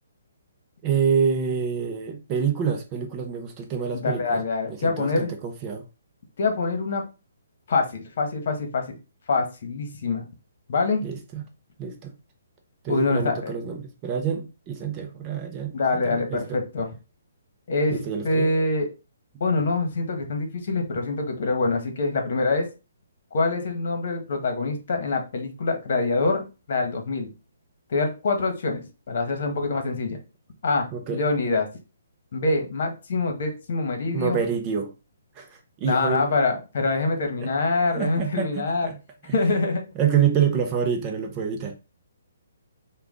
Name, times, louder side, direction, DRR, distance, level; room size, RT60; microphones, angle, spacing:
voice 1, 0.8-4.4 4.7-5.9 11.0-11.4 11.8-12.1 12.8-16.6 17.9-18.5 30.9-31.2 34.1-34.9 35.4-36.3 37.4-37.5 38.0-39.0 39.2-39.4 40.0-41.7, right 7 dB, 20° right, 0.6 m, -27 dB
voice 2, 3.9-5.3 6.4-7.0 7.7-8.8 9.3-10.2 10.7-11.0 12.9-13.5 15.7-16.9 17.7-18.0 18.2-18.9 19.4-22.7 23.3-27.3 27.9-30.2 30.6-31.7 32.3-34.4 35.8-38.9 39.3-39.8, left 3 dB, 55° left, 1.2 m, -25 dB
4.9 x 2.3 x 3.7 m
hypercardioid pair, 160°, 0 cm